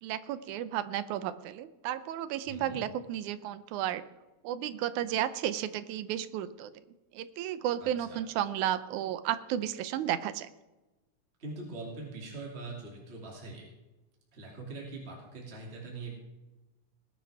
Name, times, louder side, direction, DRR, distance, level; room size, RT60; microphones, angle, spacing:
voice 1, 0.0-4.0 4.4-6.7 7.1-10.5, right 11 dB, 85° right, 13 dB, 2.1 m, -33 dB
voice 2, 2.4-2.8 7.8-8.2 11.4-13.7 14.3-16.2, right 3 dB, 20° right, -2 dB, 2.6 m, -42 dB
20.0 x 10.0 x 3.5 m, 1.1 s
omnidirectional pair, 3.4 m